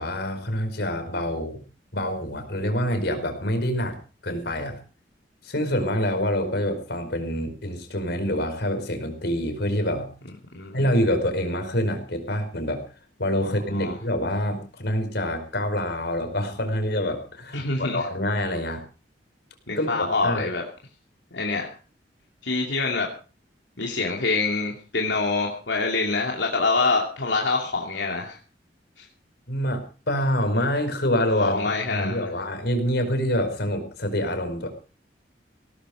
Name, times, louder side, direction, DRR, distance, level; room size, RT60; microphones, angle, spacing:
voice 1, 0.0-1.6 1.9-4.0 4.2-4.8 5.4-10.1 10.7-12.8 13.2-18.8 19.8-20.5 29.5-29.8 30.1-34.7, equal, 65° left, 6 dB, 4.9 m, -26 dB
voice 2, 13.4-13.9 17.5-18.0 19.7-20.6 21.3-21.7 22.4-23.1 23.8-28.4 29.0-29.1 31.4-32.3, left 3 dB, 90° left, 0 dB, 2.7 m, -25 dB
18.0 x 13.0 x 5.0 m, 0.36 s
head